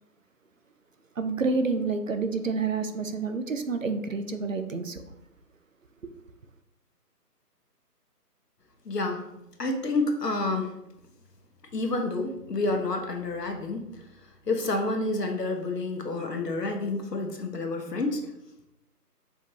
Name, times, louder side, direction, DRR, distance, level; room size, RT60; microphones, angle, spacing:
voice 1, 1.2-5.0 6.0-6.1, right 4 dB, 55° right, 7 dB, 0.5 m, -29 dB
voice 2, 8.8-9.2 9.6-10.7 11.7-13.8 14.5-18.3, left 2 dB, 75° left, 4 dB, 1.1 m, -29 dB
5.1 x 3.6 x 2.8 m, 0.85 s
figure-of-eight pair, 155°, 48 cm